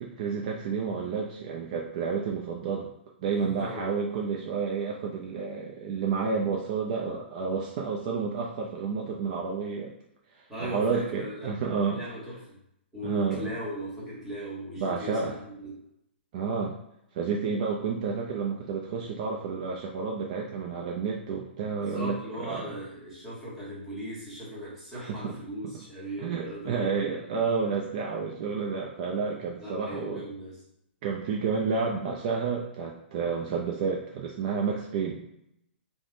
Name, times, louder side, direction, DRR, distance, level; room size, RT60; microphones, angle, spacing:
voice 1, 0.0-2.9 3.2-10.0 10.6-12.0 13.0-13.5 14.8-15.4 16.3-16.7 17.1-22.8 24.9-25.3 26.2-30.2 31.0-35.2, right 5 dB, 40° right, -1 dB, 0.4 m, -30 dB
voice 2, 3.4-3.9 10.5-11.5 11.9-12.6 12.9-15.7 21.7-27.0 29.6-30.6, equal, ahead, -8 dB, 1.2 m, -38 dB
3.3 x 2.1 x 2.6 m, 0.78 s
hypercardioid pair, 140°, 6 cm